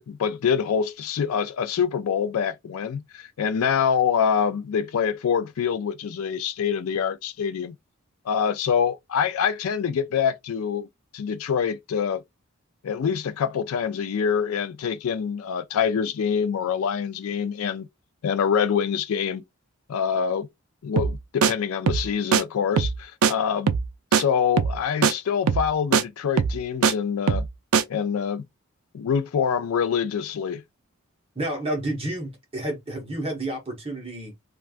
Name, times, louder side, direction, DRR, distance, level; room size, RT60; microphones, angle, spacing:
voice 1, 0.0-7.8 8.3-10.9 11.1-12.2 12.8-17.9 18.2-19.4 19.9-20.5 20.8-23.7 24.1-27.5 27.9-28.4 28.9-30.6, left 7 dB, 80° left, 0.4 m, -25 dB
sound 1, 21.0-21.2 21.4-21.5 21.9-22.1 22.3-22.4 22.8-23.0 23.2-23.3 23.7-23.9 24.1-24.2 24.6-24.8 25.0-25.1 25.5-25.7 25.9-26.0 26.4-26.9 27.3-27.5 27.7-27.8, right 6 dB, 80° right, 0.4 m, -20 dB
voice 2, 31.3-34.3, right 1 dB, 25° right, 1.1 m, -30 dB
3.2 x 2.3 x 2.4 m
head